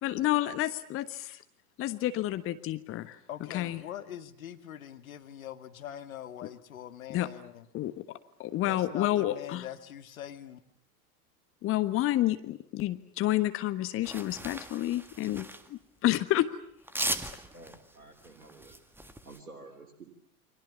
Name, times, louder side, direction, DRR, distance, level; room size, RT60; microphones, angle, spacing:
voice 1, 0.0-1.4 1.8-3.2 3.5-3.8 7.1-7.3 7.7-9.7 11.6-16.5, left 14 dB, 30° left, 12 dB, 1.3 m, -30 dB
voice 2, 2.9-7.7 8.6-10.6, left 10 dB, 65° left, 8 dB, 2.2 m, -43 dB
sound 1, 14.0-15.7 16.8-19.4, right 1 dB, 5° right, 1.8 m, -38 dB
voice 3, 17.5-20.1, right 3 dB, 75° right, 2 dB, 3.7 m, -51 dB
29.5 x 24.5 x 7.1 m, 0.68 s
figure-of-eight pair, 90°, 45 cm